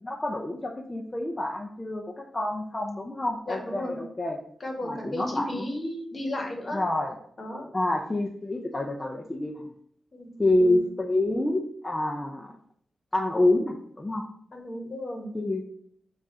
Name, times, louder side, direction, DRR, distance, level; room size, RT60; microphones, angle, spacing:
voice 1, 0.0-4.4 4.8-5.7 6.7-7.2 7.7-9.6 10.4-12.5 13.1-14.2 15.3-15.6, left 2 dB, 20° left, -1 dB, 0.5 m, -27 dB
voice 2, 3.5-4.0 4.6-6.8 7.4-7.7 10.1-10.3 10.6-10.9 14.5-15.3, left 1 dB, 40° left, 1 dB, 1.1 m, -34 dB
4.7 x 2.5 x 4.1 m, 0.64 s
wide cardioid pair, 90°, 0 cm